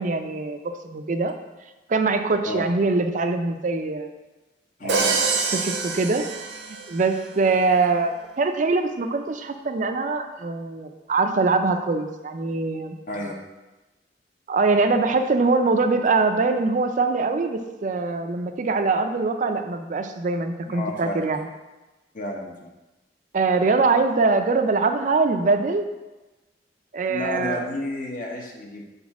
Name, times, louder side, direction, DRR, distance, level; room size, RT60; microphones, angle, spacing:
voice 1, 0.0-1.3 1.9-4.1 4.8-6.2 6.7-12.9 14.5-21.5 23.3-25.9 26.9-27.6, right 3 dB, 45° right, 7 dB, 0.4 m, -23 dB
voice 2, 4.8-5.2 13.1-13.3 20.7-21.3 22.1-22.5 27.1-28.8, left 1 dB, 50° left, 0 dB, 1.1 m, -31 dB
Crash cymbal, 4.9-7.1, right 4 dB, 80° right, 0.8 m, -25 dB
5.3 x 4.1 x 5.9 m, 1.1 s
head